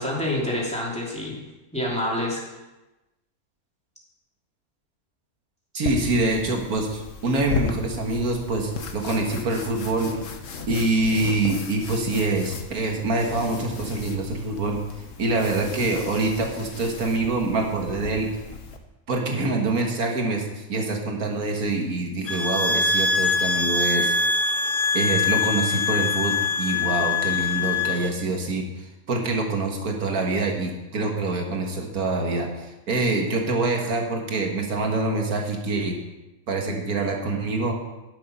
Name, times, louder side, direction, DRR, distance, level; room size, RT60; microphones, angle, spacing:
voice 1, 0.0-1.4 1.7-2.4, left 1 dB, 5° left, -5 dB, 2.9 m, -27 dB
voice 2, 5.7-10.1 10.7-14.8 15.2-18.3 19.1-24.1 24.9-28.6 29.1-36.0 36.5-37.8, right 2 dB, 80° right, 2 dB, 2.1 m, -25 dB
sound 1, 5.9-18.8, left 4 dB, 60° left, 1.3 m, -35 dB
sound 2, 22.3-28.1, left 4 dB, 45° left, 0.8 m, -23 dB
11.5 x 7.6 x 5.5 m, 1.0 s
omnidirectional pair, 1.5 m